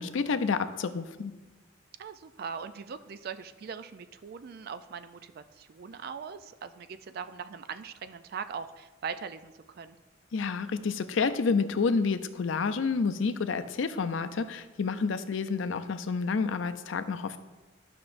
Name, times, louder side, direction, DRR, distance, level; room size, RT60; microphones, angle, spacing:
voice 1, 0.0-1.3 10.3-17.4, left 4 dB, 70° left, 10 dB, 0.5 m, -29 dB
voice 2, 2.0-10.0, right 6 dB, 50° right, 11 dB, 0.3 m, -41 dB
11.5 x 5.9 x 2.5 m, 1.2 s
head